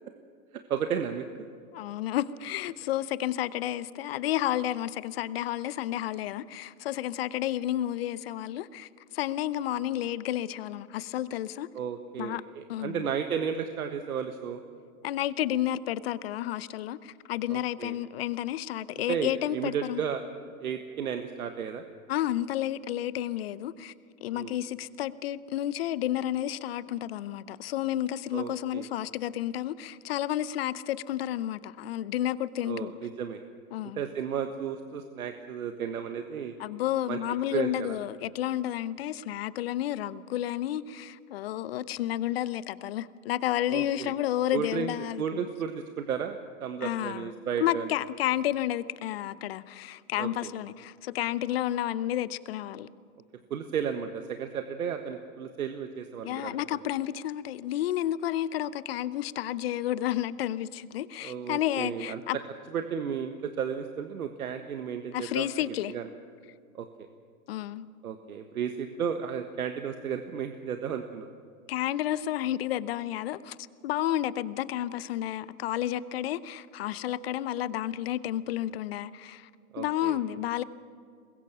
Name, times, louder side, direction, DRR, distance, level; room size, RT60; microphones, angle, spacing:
voice 1, 0.7-1.2 11.7-14.6 17.5-18.0 19.1-20.2 20.6-21.8 24.3-24.5 28.3-28.9 32.6-33.4 33.9-36.5 37.1-37.2 37.5-38.0 43.7-44.1 44.5-47.9 50.2-50.5 53.5-56.6 61.2-62.2 62.7-65.5 65.9-66.1 66.7-66.9 68.0-71.3 79.7-80.2, right 7 dB, 80° right, 1.5 m, -33 dB
voice 2, 1.7-11.7 12.2-12.4 12.7-13.1 15.0-20.0 22.1-23.9 24.2-32.9 33.7-34.1 36.6-45.2 46.8-52.9 56.2-62.4 65.1-65.9 67.5-67.9 71.7-73.6 73.8-79.5 79.8-80.6, left 12 dB, 45° left, 0.8 m, -31 dB
24.0 x 21.0 x 6.1 m
hypercardioid pair, 145°, 43 cm